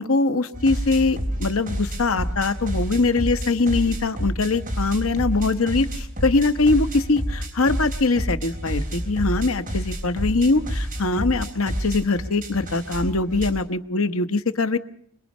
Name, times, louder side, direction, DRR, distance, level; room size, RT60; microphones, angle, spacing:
voice 1, 0.0-14.8, left 3 dB, 85° left, 9 dB, 1.2 m, -22 dB
sound 1, 0.5-13.5, equal, 40° right, 3.9 m, -29 dB
25.5 x 21.5 x 5.6 m, 0.64 s
head